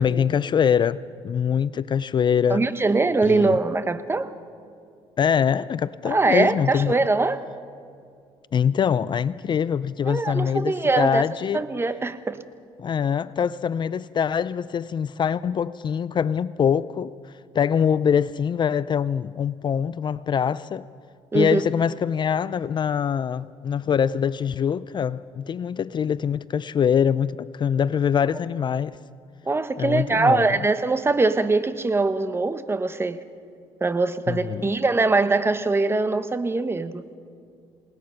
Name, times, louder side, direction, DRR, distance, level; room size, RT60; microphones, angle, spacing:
voice 1, 0.0-2.6 3.2-3.6 5.2-6.9 8.5-11.6 12.8-17.1 17.5-20.9 21.3-29.0 29.8-30.6 34.3-34.7, left 7 dB, 40° left, 0.4 m, -23 dB
voice 2, 2.5-4.3 6.1-7.4 10.1-11.2 11.5-12.4 21.3-21.6 29.5-33.2 33.8-37.0, right 3 dB, 20° right, 1.0 m, -22 dB
28.0 x 19.0 x 5.8 m
cardioid pair, 85°, 12 cm